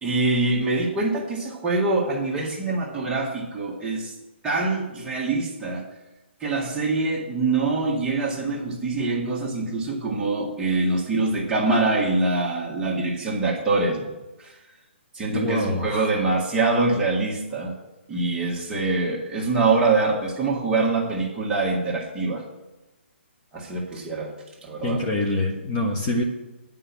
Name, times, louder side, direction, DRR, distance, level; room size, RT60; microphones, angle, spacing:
voice 1, 0.0-4.1 4.4-5.8 6.4-14.1 14.4-14.5 15.1-17.7 18.1-22.4 23.5-24.3 24.6-25.0, right 3 dB, 10° right, -3 dB, 1.6 m, -24 dB
voice 2, 15.3-16.1 24.8-26.2, left 2 dB, 25° left, 0 dB, 1.4 m, -25 dB
9.9 x 5.5 x 8.4 m, 1.0 s
hypercardioid pair, 150°, 6 cm